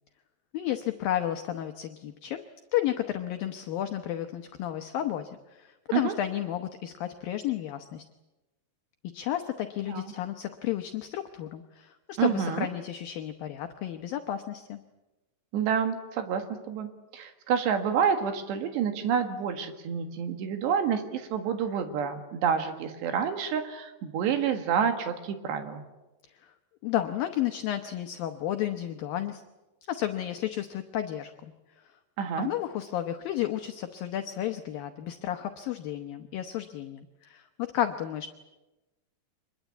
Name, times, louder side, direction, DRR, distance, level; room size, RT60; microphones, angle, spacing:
voice 1, 0.5-2.4 2.7-8.0 9.1-14.8 26.3-26.5 26.8-29.4 29.8-32.0 32.4-38.3, left 12 dB, 70° left, 6 dB, 2.3 m, -32 dB
voice 2, 12.2-12.7 15.5-25.8 32.2-32.5, right 7 dB, 80° right, 7 dB, 3.8 m, -28 dB
24.5 x 21.5 x 8.3 m, 1.1 s
omnidirectional pair, 4.9 m